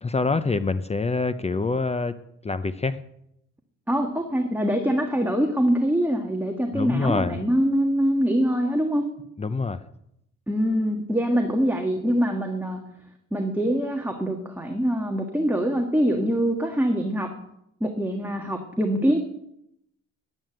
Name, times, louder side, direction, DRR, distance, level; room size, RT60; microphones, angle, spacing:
voice 1, 0.0-2.2 2.4-3.0 6.7-7.4 9.4-9.8, left 3 dB, 20° left, 13 dB, 0.6 m, -25 dB
voice 2, 3.9-9.0 10.5-12.8 13.3-17.3 17.8-19.2, equal, 5° right, 2 dB, 1.6 m, -24 dB
11.0 x 9.2 x 7.7 m, 0.78 s
cardioid pair, 90°, 30 cm